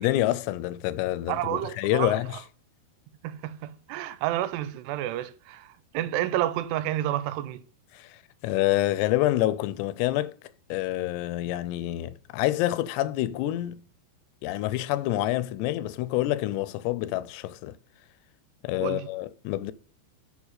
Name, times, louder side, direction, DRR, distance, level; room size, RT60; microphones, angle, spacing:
voice 1, 0.0-2.4 7.9-10.4 10.7-13.8 14.4-17.8 18.6-19.7, left 15 dB, 80° left, 2.6 m, -27 dB
voice 2, 1.3-2.2 3.2-7.6 18.8-19.1, right 13 dB, 80° right, 2.6 m, -30 dB
7.1 x 5.7 x 6.5 m
omnidirectional pair, 5.1 m